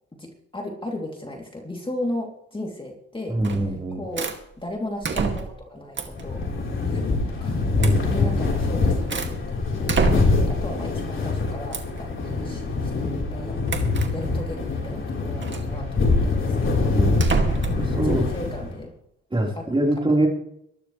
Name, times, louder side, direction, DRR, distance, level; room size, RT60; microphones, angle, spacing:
voice 1, 0.2-3.4 4.0-4.3 4.6-6.5 6.9-7.6 8.1-9.4 10.4-17.0 17.7-18.9 19.6-19.7 20.1-20.2, left 1 dB, 15° left, 0 dB, 3.1 m, -35 dB
voice 2, 3.3-4.1 7.7-8.1 16.9-17.1 17.8-18.2 19.3-20.3, right 1 dB, 15° right, 0 dB, 4.3 m, -23 dB
sound 1, 3.4-3.8 4.2-4.4 5.0-5.6 5.9-6.3 7.8-8.0 8.6-9.4 9.9-10.5 11.7-12.0 13.7-14.1 15.4-15.7 17.1-17.8, right 4 dB, 40° right, 2.4 m, -26 dB
sound 2, 6.1-18.9, left 3 dB, 40° left, 4.2 m, -24 dB
23.0 x 12.0 x 3.3 m, 0.72 s
cardioid pair, 90°, 30 cm